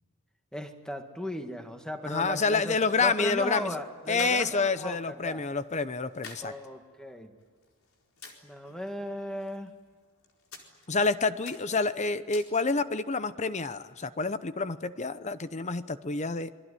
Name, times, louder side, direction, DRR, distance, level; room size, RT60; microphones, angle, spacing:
voice 1, 0.5-5.4 6.4-7.4 8.4-9.7, equal, 5° left, 5 dB, 1.8 m, -37 dB
voice 2, 2.0-3.8 4.1-6.5 10.9-16.5, left 4 dB, 35° left, 13 dB, 0.9 m, -28 dB
sound 1, 2.9-13.0, left 4 dB, 80° left, 4.4 m, -52 dB
26.0 x 22.0 x 10.0 m, 1.5 s
head